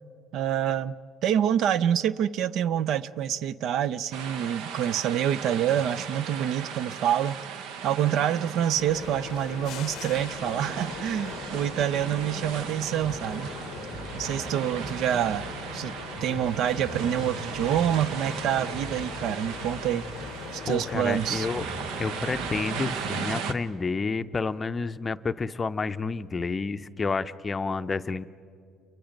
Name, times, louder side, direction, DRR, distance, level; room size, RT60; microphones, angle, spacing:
voice 1, 0.3-0.9 1.2-7.4 7.8-13.5 14.1-15.4 15.7-15.9 16.2-20.1 20.5-21.5, right 10 dB, 70° right, 18 dB, 0.5 m, -27 dB
sound 1, 4.1-23.5, right 7 dB, 85° right, 1.0 m, -37 dB
sound 2, 8.8-23.4, left 11 dB, 70° left, 0.6 m, -41 dB
Bass guitar, 13.0-22.6, right 1 dB, 45° right, 4.7 m, -43 dB
voice 2, 20.7-21.7 22.0-28.3, left 4 dB, 25° left, 11 dB, 0.5 m, -30 dB
29.5 x 23.5 x 5.2 m, 2.5 s
cardioid pair, 120°, 0 cm